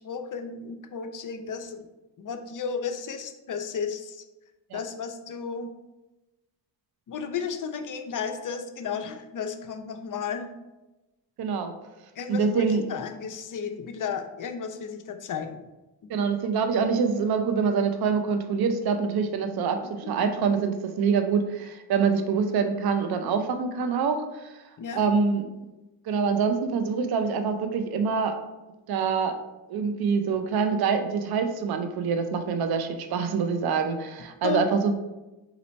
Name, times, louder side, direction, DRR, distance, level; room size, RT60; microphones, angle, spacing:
voice 1, 0.0-1.9 2.2-4.2 4.7-5.7 7.1-10.5 12.2-15.6 20.2-20.3 24.8-25.0 34.4-34.6, left 6 dB, 40° left, 6 dB, 0.6 m, -33 dB
voice 2, 11.4-11.7 12.3-12.9 16.1-24.6 24.9-25.5 26.1-28.3 28.9-29.3 29.7-34.9, right 5 dB, 50° right, 7 dB, 0.6 m, -25 dB
4.0 x 2.9 x 4.2 m, 1.0 s
cardioid pair, 75°, 48 cm